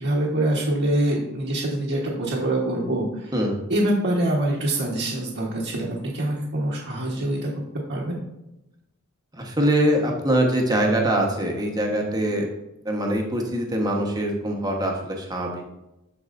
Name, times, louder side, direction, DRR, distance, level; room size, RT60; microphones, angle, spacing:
voice 1, 0.0-3.3 3.7-7.5 7.9-8.2, right 1 dB, 55° right, -6 dB, 1.3 m, -25 dB
voice 2, 3.3-3.6 9.3-12.5 12.8-15.6, right 1 dB, 20° right, 0 dB, 1.2 m, -23 dB
13.5 x 4.7 x 2.6 m, 0.94 s
head